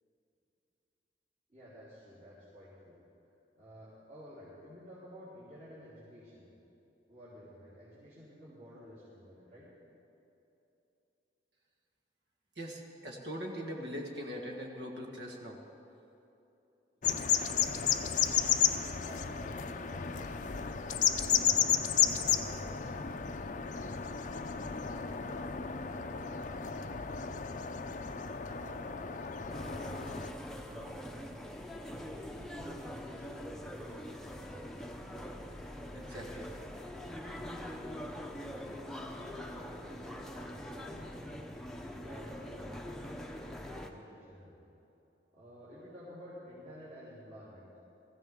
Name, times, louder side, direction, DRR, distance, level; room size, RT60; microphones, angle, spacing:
voice 1, 1.5-3.0 3.6-6.5 7.1-9.7 18.8-21.7 22.1-22.8 23.5-29.9 30.6-31.5 31.8-34.7 37.2-37.9 38.3-38.6 39.4-41.1 41.9-43.2 43.7-44.6 45.3-47.6, equal, 50° right, -13 dB, 3.8 m, -52 dB
voice 2, 12.6-15.6 35.9-36.5, equal, 70° right, 0 dB, 1.7 m, -41 dB
sound 1, 17.0-30.3, left 8 dB, 45° left, 0.5 m, -32 dB
sound 2, 29.5-43.9, left 1 dB, 5° left, 0.8 m, -43 dB
20.0 x 15.0 x 3.7 m, 2.9 s
head